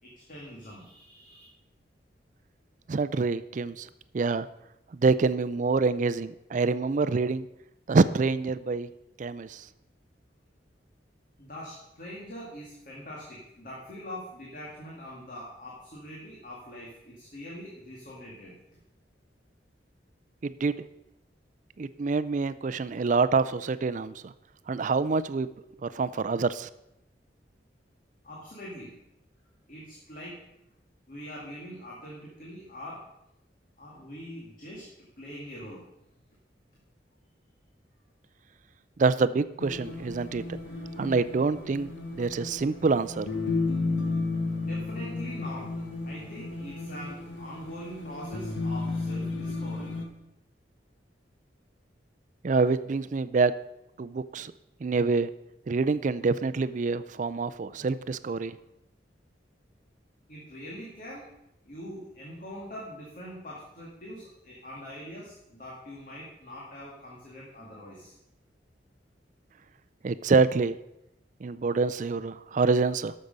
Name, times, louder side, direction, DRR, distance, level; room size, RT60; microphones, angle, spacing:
voice 1, 0.0-1.5 11.4-18.8 28.2-29.0 29.7-30.4 31.1-33.0 33.8-35.9 44.6-49.9 60.3-61.3 61.6-68.1, equal, 50° left, -4 dB, 2.2 m, -43 dB
voice 2, 2.9-3.9 4.1-4.5 4.9-7.5 7.9-8.9 9.2-9.7 20.4-20.7 21.8-24.3 24.7-25.5 25.8-26.7 39.0-40.4 41.0-43.3 52.4-53.5 54.0-54.5 54.8-55.3 55.7-58.6 70.0-70.8 71.4-73.1, right 4 dB, 45° right, 14 dB, 0.4 m, -26 dB
sound 1, 39.6-50.1, left 3 dB, 90° left, 1.5 m, -33 dB
13.0 x 6.5 x 5.3 m, 0.85 s
head